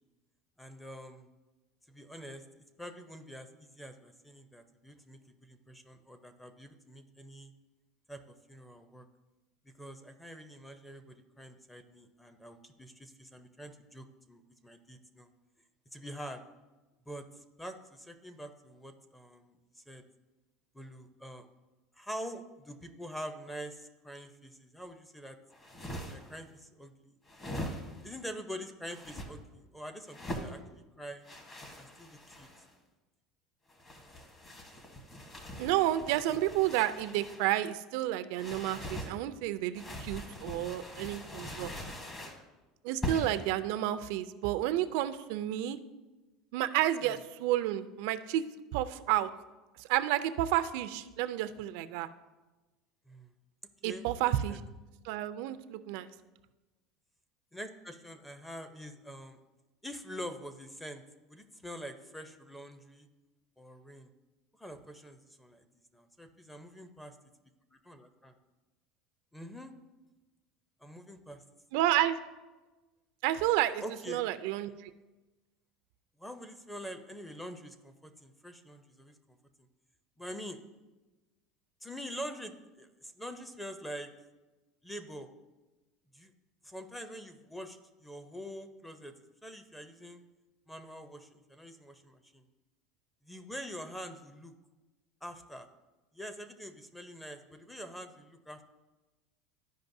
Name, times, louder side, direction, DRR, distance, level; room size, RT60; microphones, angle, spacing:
voice 1, 0.6-1.3 1.9-2.4 2.8-7.5 8.1-9.1 9.6-15.3 15.9-16.4 17.1-20.0 20.7-21.4 21.9-25.4 26.1-27.2 27.6-27.7 28.0-31.2 31.8-32.5 47.0-47.1 53.1-53.3 53.8-54.6 57.5-59.4 59.8-63.1 63.6-64.1 64.6-65.7 65.9-67.1 67.8-68.3 69.3-69.7 70.8-71.4 73.8-74.2 76.2-79.7 80.2-80.6 81.8-84.1 84.8-85.3 86.1-86.3 86.6-90.2 90.7-92.5 93.2-94.5 95.2-95.7 96.1-98.6, equal, 5° left, 9 dB, 0.6 m, -45 dB
sound 1, 25.5-26.4 27.3-28.1 28.9-29.3 30.1-30.5 31.2-32.7 33.7-37.5 38.3-39.1 39.7-42.4 43.0-43.5, left 1 dB, 25° left, 1.1 m, -42 dB
voice 2, 35.6-41.7 42.8-45.8 46.5-48.4 48.7-49.3 49.8-52.1 53.8-54.6 55.0-56.1 71.7-72.1 73.2-74.9, right 13 dB, 75° right, 11 dB, 0.4 m, -31 dB
13.0 x 5.2 x 2.6 m, 1.2 s
supercardioid pair, 135°, 0 cm